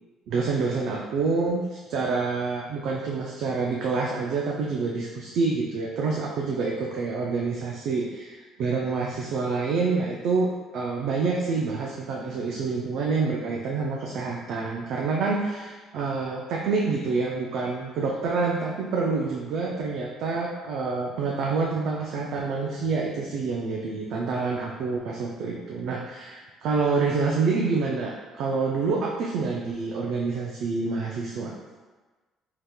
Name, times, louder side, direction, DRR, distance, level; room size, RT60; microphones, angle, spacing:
voice 1, 0.3-31.5, right 4 dB, 70° right, -2 dB, 0.4 m, -27 dB
3.4 x 2.8 x 2.2 m, 1.3 s
cardioid pair, 100°, 0 cm